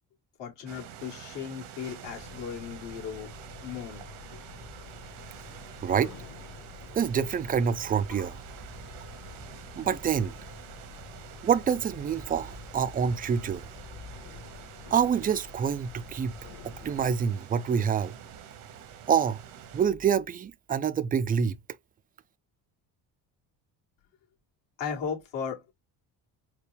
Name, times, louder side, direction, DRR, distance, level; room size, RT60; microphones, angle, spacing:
voice 1, 0.4-3.3 3.6-4.0 4.3-4.4 24.8-25.7, left 7 dB, 70° left, 2.3 m, -36 dB
sound 1, 0.7-19.9, right 9 dB, 90° right, 1.1 m, -47 dB
sound 2, 2.1-17.2, left 6 dB, 45° left, 1.4 m, -48 dB
voice 2, 5.8-6.1 6.9-8.4 9.8-10.3 11.4-13.7 14.9-16.4 16.6-18.2 19.1-19.4 19.7-21.6, right 7 dB, 20° right, 0.3 m, -26 dB
4.6 x 2.2 x 3.3 m
supercardioid pair, 85°, 45 cm